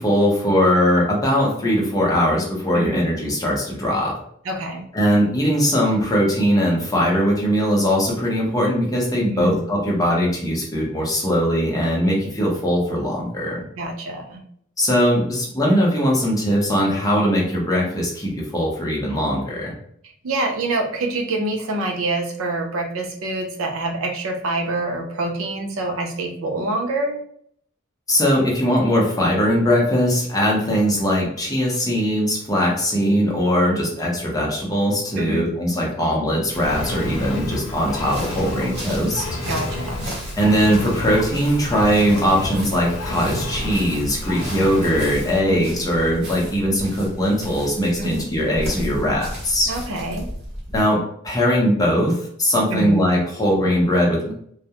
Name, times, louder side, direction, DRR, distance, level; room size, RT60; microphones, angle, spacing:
voice 1, 0.0-4.1 4.9-13.6 14.8-19.7 28.1-39.2 40.4-49.7 50.7-51.0 51.2-54.3, equal, 15° left, -3 dB, 0.6 m, -20 dB
voice 2, 4.4-4.9 9.2-9.6 13.8-14.4 20.2-27.2 35.2-35.5 39.5-40.1 45.5-45.6 48.0-48.3 49.7-50.3 52.7-53.1, right 2 dB, 80° right, 2 dB, 0.5 m, -26 dB
Engine, 36.5-45.4, left 1 dB, 70° left, 0.5 m, -30 dB
sound 1, 38.0-50.8, equal, 55° right, 0.9 m, -35 dB
2.3 x 2.0 x 2.8 m, 0.65 s
head